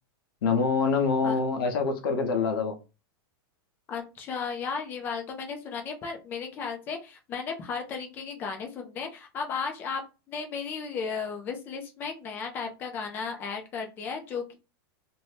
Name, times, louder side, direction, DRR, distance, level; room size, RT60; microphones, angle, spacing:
voice 1, 0.4-2.8, left 4 dB, 65° left, 0.8 m, -25 dB
voice 2, 3.9-10.0 10.3-14.6, left 5 dB, 15° left, 0.4 m, -34 dB
2.7 x 2.1 x 3.2 m
supercardioid pair, 175°, 13 cm